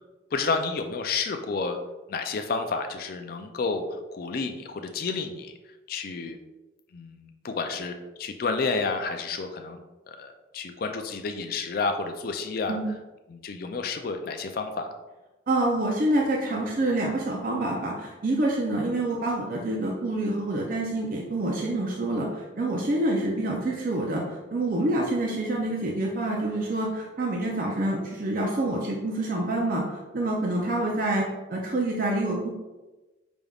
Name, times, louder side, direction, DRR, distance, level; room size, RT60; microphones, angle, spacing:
voice 1, 0.3-1.8 2.1-5.5 5.9-6.4 6.9-9.8 10.1-12.8 13.3-14.9, left 4 dB, 50° left, 6 dB, 0.4 m, -30 dB
voice 2, 15.5-29.8 30.1-32.5, right 1 dB, 45° right, -2 dB, 0.5 m, -27 dB
5.1 x 3.4 x 2.3 m, 1.1 s
head